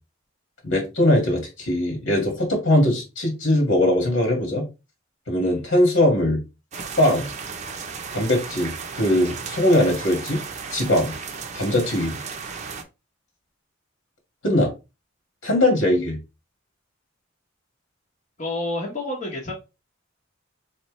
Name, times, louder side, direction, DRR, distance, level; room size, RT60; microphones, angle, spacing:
voice 1, 0.6-4.6 5.3-6.4 7.0-7.3 8.1-10.4 10.7-11.1 11.5-12.2 14.4-14.7 15.4-16.2, left 1 dB, 75° left, 1.9 m, -20 dB
sound 1, 6.7-12.8, right 5 dB, 35° right, 0.6 m, -35 dB
voice 2, 18.4-19.5, left 2 dB, 40° left, 1.1 m, -29 dB
4.2 x 3.4 x 3.1 m
head